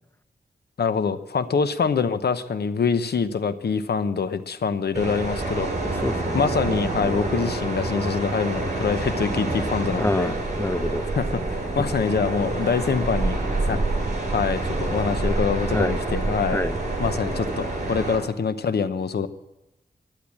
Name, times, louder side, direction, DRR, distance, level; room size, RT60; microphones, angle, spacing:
voice 1, 0.8-6.0 6.3-10.3 11.2-13.4 13.7-14.0 14.3-16.6 17.0-19.3, left 5 dB, 80° left, 11 dB, 0.9 m, -25 dB
sound 1, 4.9-18.2, right 2 dB, 45° right, 6.8 m, -27 dB
voice 2, 5.8-6.4 10.0-11.0 11.8-11.9 13.7-13.9 15.7-16.0 16.5-16.7, left 1 dB, 15° left, 13 dB, 0.6 m, -27 dB
15.0 x 10.5 x 8.5 m, 0.95 s
wide cardioid pair, 115°, 17 cm